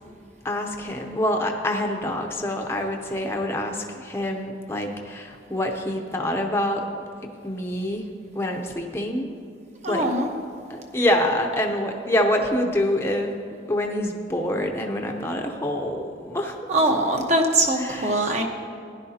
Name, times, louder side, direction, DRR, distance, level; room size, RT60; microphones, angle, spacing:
voice 1, 0.4-6.8 7.4-8.1 8.3-9.3 9.9-10.1 10.7-13.3 13.7-16.6 17.7-18.4, left 1 dB, 15° left, 2 dB, 0.7 m, -26 dB
voice 2, 9.8-10.3 16.7-18.4, right 1 dB, 40° right, 2 dB, 1.0 m, -22 dB
15.5 x 10.5 x 2.8 m, 2.4 s
head